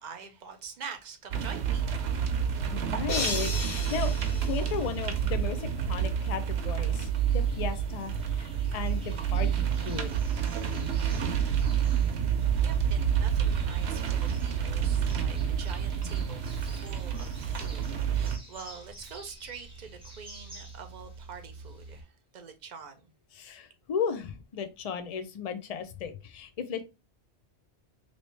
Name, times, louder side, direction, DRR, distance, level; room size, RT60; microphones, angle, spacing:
voice 1, 0.0-1.9 2.3-2.7 12.6-22.1 22.3-23.1, right 6 dB, 50° right, 0.7 m, -45 dB
sound 1, 1.3-18.4, right 8 dB, 80° right, 0.9 m, -29 dB
voice 2, 2.7-10.1 23.3-26.8, left 7 dB, 50° left, 0.5 m, -35 dB
sound 2, 3.1-5.4, left 4 dB, 65° left, 1.1 m, -35 dB
sound 3, 6.5-22.0, right 2 dB, 5° right, 0.9 m, -49 dB
3.1 x 2.7 x 3.1 m
omnidirectional pair, 1.1 m